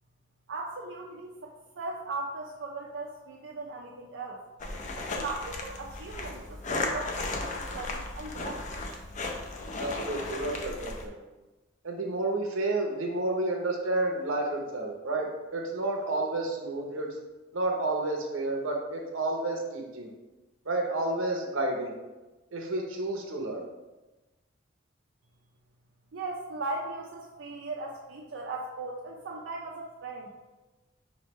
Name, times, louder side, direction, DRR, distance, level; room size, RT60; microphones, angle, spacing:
voice 1, 0.5-4.4 5.0-8.6 26.1-30.3, right 3 dB, 65° right, -2 dB, 0.4 m, -38 dB
sound 1, 4.6-11.1, left 2 dB, 35° left, 0.5 m, -35 dB
voice 2, 9.8-11.2 11.8-17.1 17.5-20.1 20.7-21.9 22.5-23.6, right 2 dB, 85° right, 1 dB, 0.8 m, -30 dB
5.2 x 3.2 x 3.1 m, 1.1 s
head